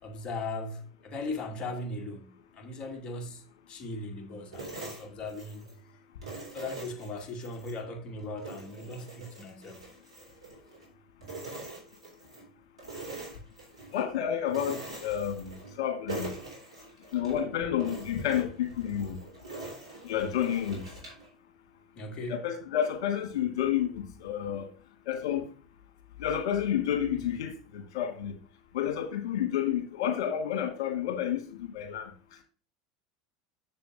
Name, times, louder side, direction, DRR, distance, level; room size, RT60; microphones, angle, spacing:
voice 1, 0.0-5.6 6.5-9.9 22.0-22.4, left 2 dB, 35° left, 2.3 m, -38 dB
sound 1, 4.5-5.8 6.2-7.8 8.2-10.9 11.2-12.5 12.8-14.0 14.5-15.8 16.1-17.4 17.8-21.3, right 3 dB, 90° right, 3.7 m, -43 dB
voice 2, 13.9-16.3 17.1-19.2 20.0-20.8 22.3-24.7 25.1-25.5 26.2-28.3 28.7-32.1, left 9 dB, 70° left, 2.1 m, -30 dB
7.3 x 6.8 x 3.6 m
hypercardioid pair, 80°, 3 cm